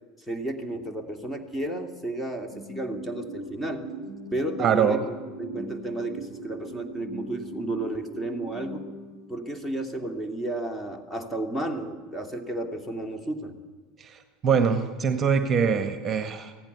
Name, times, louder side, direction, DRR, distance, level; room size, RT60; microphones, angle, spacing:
voice 1, 0.3-3.9 4.3-5.0 5.4-8.9 9.3-13.6, right 1 dB, 10° left, 4 dB, 2.5 m, -32 dB
sound 1, 2.5-9.7, right 1 dB, 85° left, 5.6 m, -40 dB
voice 2, 4.6-5.0 14.0-16.5, right 6 dB, 30° right, 8 dB, 1.7 m, -24 dB
25.0 x 16.5 x 6.8 m, 1.4 s
figure-of-eight pair, 75°, 0 cm